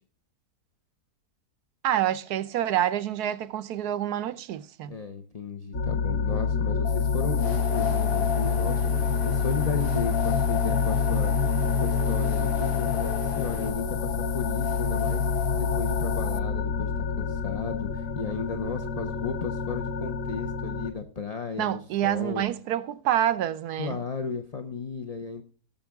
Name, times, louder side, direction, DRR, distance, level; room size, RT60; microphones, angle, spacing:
voice 1, 1.8-5.0 21.6-24.0, right 11 dB, 75° right, 1.2 m, -27 dB
voice 2, 4.9-8.8 9.2-11.3 11.7-22.5 23.8-25.4, left 5 dB, 35° left, 0.6 m, -34 dB
sound 1, 5.7-20.9, left 5 dB, 55° left, 1.5 m, -27 dB
sound 2, 6.8-16.4, left 11 dB, 90° left, 0.5 m, -34 dB
sound 3, 7.4-13.7, right 1 dB, 30° right, 4.0 m, -43 dB
17.5 x 7.2 x 3.5 m
omnidirectional pair, 1.7 m